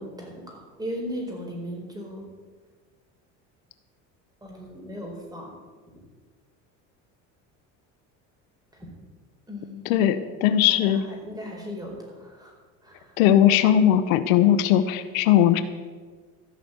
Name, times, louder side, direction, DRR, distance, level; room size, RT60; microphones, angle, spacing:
voice 1, 0.0-2.3 4.4-5.6 8.7-8.9 9.5-10.1 10.5-12.5 12.8-13.2, equal, 10° right, 0 dB, 4.4 m, -37 dB
voice 2, 9.9-11.0 13.2-15.6, left 11 dB, 90° left, 12 dB, 1.0 m, -19 dB
15.0 x 6.1 x 8.1 m, 1.4 s
supercardioid pair, 105°, 39 cm